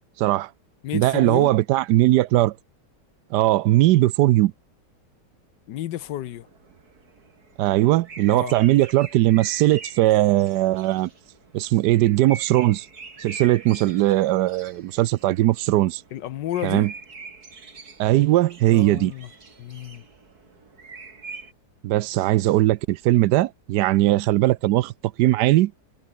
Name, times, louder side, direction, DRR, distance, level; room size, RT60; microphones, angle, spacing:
voice 1, 0.2-0.5 0.9-2.5 3.3-4.5 7.6-11.1 11.5-12.9 13.2-16.0 16.6-16.9 18.0-19.1 21.8-24.9 25.2-25.7, right 15 dB, 75° right, 1.1 m, -19 dB
voice 2, 0.8-1.5 5.7-6.5 8.3-8.6 16.1-16.9 18.7-19.3 19.6-20.0, left 13 dB, 85° left, 1.4 m, -31 dB
sound 1, 5.9-21.5, right 4 dB, 60° right, 3.4 m, -44 dB
omnidirectional pair, 1.9 m